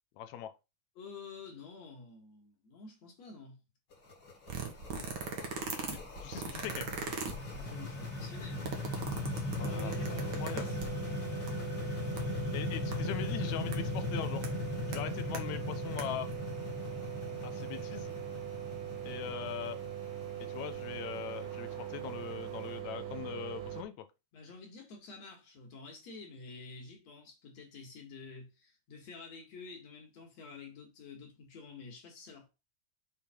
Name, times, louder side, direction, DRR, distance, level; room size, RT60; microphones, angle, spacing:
voice 1, 0.2-0.5 5.0-5.2 5.9-6.9 9.6-10.0 10.4-10.7 12.5-14.4 14.9-16.3 17.4-18.2 19.1-19.8 20.4-24.1, left 10 dB, 80° left, 1.7 m, -41 dB
voice 2, 1.0-3.6 7.4-8.7 9.6-11.0 24.3-32.5, left 4 dB, 55° left, 2.8 m, -49 dB
sound 1, 3.9-22.7, left 3 dB, 40° left, 1.9 m, -39 dB
sound 2, 4.5-11.1 11.5-11.6 11.8-12.2 12.9-13.0 13.7-13.8 14.4-14.5 14.9-15.4 15.8-16.0 16.3-16.4, right 5 dB, 70° right, 1.0 m, -39 dB
sound 3, 9.6-23.8, right 10 dB, 85° right, 2.7 m, -41 dB
6.6 x 3.5 x 4.3 m
omnidirectional pair, 3.7 m